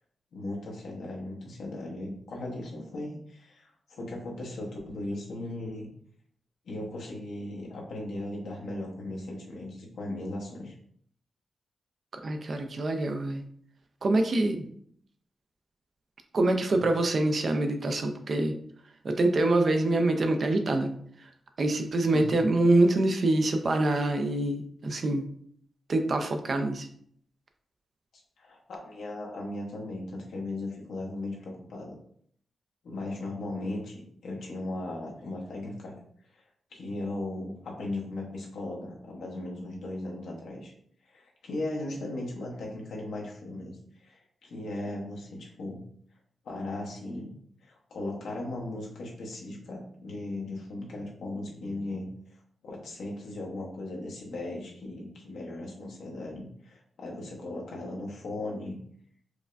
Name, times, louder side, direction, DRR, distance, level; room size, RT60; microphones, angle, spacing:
voice 1, 0.3-5.9 6.6-10.7 16.7-16.9 22.1-22.4 28.4-32.0 32.8-35.9 36.3-36.4 36.7-40.7 41.1-45.8 46.4-47.3 47.6-52.1 52.6-58.8, left 2 dB, 90° left, -2 dB, 0.9 m, -37 dB
voice 2, 12.2-13.4 14.0-14.7 16.3-18.6 19.0-20.9 21.2-21.3 21.6-25.3 25.9-26.9, right 2 dB, 50° right, 5 dB, 0.5 m, -25 dB
4.7 x 2.2 x 2.5 m, 0.64 s
wide cardioid pair, 110°, 0 cm